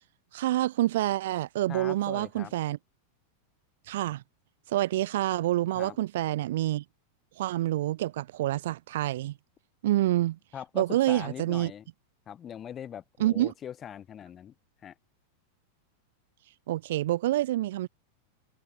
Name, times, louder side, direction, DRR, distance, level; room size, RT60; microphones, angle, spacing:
voice 1, 0.3-2.8 3.9-4.2 4.7-6.8 7.4-9.3 9.8-10.4 10.8-11.7 13.2-13.5 16.7-17.9, right 15 dB, 55° right, 0.3 m, -27 dB
voice 2, 1.7-2.5 5.7-6.0 10.5-11.9 12.3-14.5 14.8-14.9, left 9 dB, 25° left, 4.9 m, -41 dB
open air
figure-of-eight pair, 90°, 0 cm